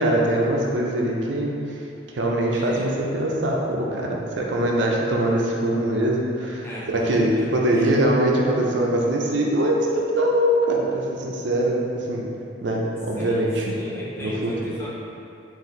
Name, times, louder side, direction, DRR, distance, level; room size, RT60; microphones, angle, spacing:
voice 1, 0.0-1.8 2.1-12.2 12.6-13.7 14.2-14.7, right 1 dB, 80° right, -2 dB, 0.6 m, -22 dB
voice 2, 2.5-2.9 6.6-8.0 13.2-14.9, equal, 15° left, -6 dB, 0.6 m, -36 dB
4.2 x 2.6 x 3.8 m, 2.6 s
head